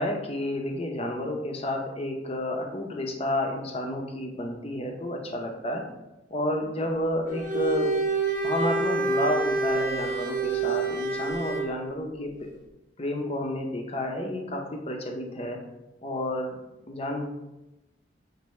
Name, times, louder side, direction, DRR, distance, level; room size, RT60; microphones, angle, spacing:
voice 1, 0.0-5.8 6.3-7.9 8.4-12.3 13.0-15.6 16.0-16.6 16.8-17.3, left 1 dB, 30° left, 2 dB, 0.6 m, -30 dB
Bowed string instrument, 7.3-11.8, right 3 dB, 45° right, 0.7 m, -27 dB
6.4 x 2.6 x 3.1 m, 0.97 s
head